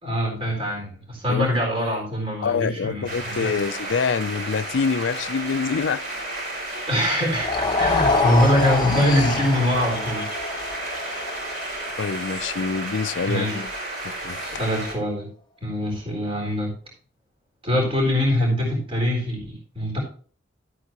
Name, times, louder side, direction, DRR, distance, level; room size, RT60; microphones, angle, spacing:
voice 1, 0.0-3.6 6.9-10.3 13.2-13.6 14.4-15.3 15.6-16.7 17.6-20.0, left 1 dB, 30° right, 3.9 m, -23 dB
voice 2, 2.4-6.0 12.0-13.7 14.0-14.6, left 5 dB, 75° left, 0.4 m, -26 dB
sound 1, 3.1-15.0, right 1 dB, 50° right, 4.9 m, -32 dB
sound 2, 7.3-13.6, left 3 dB, 20° left, 1.0 m, -26 dB
13.0 x 8.2 x 3.0 m
head